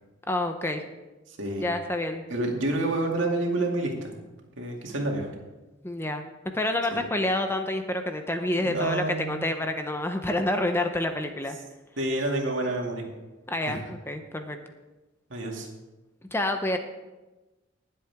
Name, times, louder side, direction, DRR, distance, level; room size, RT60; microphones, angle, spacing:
voice 1, 0.3-0.8 1.6-2.2 5.8-6.3 6.5-11.6 13.5-14.6 16.3-16.8, left 1 dB, 10° left, 6 dB, 0.7 m, -28 dB
voice 2, 1.3-1.7 2.3-4.1 4.6-5.3 6.9-7.0 8.6-9.5 12.0-13.0 13.7-13.8 15.3-15.7, right 2 dB, 75° right, 1 dB, 2.3 m, -28 dB
20.0 x 7.7 x 3.6 m, 1.1 s
head